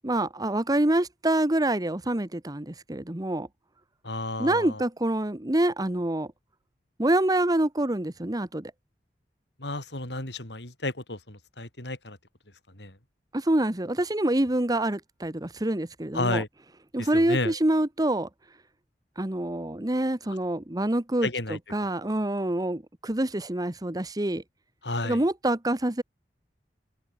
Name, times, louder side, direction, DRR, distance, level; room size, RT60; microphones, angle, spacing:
voice 1, 0.0-3.5 4.4-6.3 7.0-8.7 13.3-16.4 16.9-18.3 19.2-24.4 25.0-26.0, right 1 dB, 20° right, 1.2 m, -26 dB
voice 2, 4.0-4.8 9.6-12.2 12.7-13.0 16.1-16.5 17.0-17.5 21.2-21.6 24.8-25.2, left 2 dB, 80° left, 7.9 m, -32 dB
head